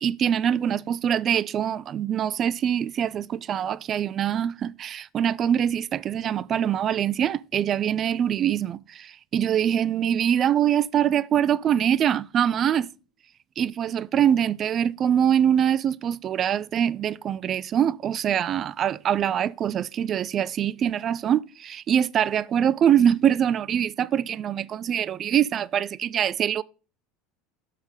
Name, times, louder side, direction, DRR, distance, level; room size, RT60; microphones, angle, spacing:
voice 1, 0.0-12.9 13.6-26.6, right 9 dB, 40° right, 0.3 m, -24 dB
7.3 x 6.3 x 3.7 m
hypercardioid pair, 80°, 0 cm